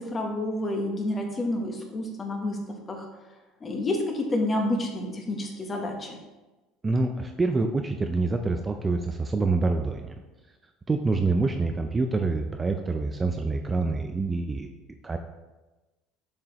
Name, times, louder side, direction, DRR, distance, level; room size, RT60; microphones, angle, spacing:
voice 1, 0.0-3.1 3.6-6.2, left 1 dB, 25° left, 3 dB, 1.1 m, -29 dB
voice 2, 6.8-10.1 10.9-14.7 15.0-15.2, right 3 dB, 20° right, 5 dB, 0.4 m, -26 dB
7.4 x 4.9 x 3.0 m, 1.1 s
supercardioid pair, 120°, 0 cm